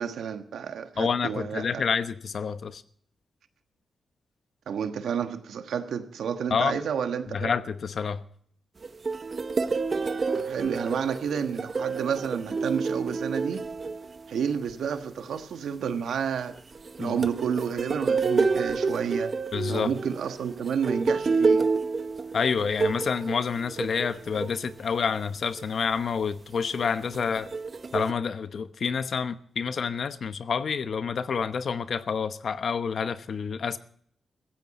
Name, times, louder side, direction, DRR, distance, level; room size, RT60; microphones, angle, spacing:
voice 1, 0.0-1.8 4.7-7.5 10.3-13.7 14.3-16.5 17.0-19.3 19.7-21.7, right 7 dB, 85° right, 1.3 m, -30 dB
voice 2, 1.0-2.8 6.5-6.8 7.3-8.2 17.0-17.2 19.5-19.9 22.3-27.5 27.9-33.8, left 6 dB, 65° left, 0.9 m, -28 dB
sound 1, 8.8-14.6 16.5-24.7 25.4-25.6 26.8-28.1, right 4 dB, 45° right, 0.9 m, -29 dB
15.5 x 15.5 x 4.2 m
cardioid pair, 70°, 0 cm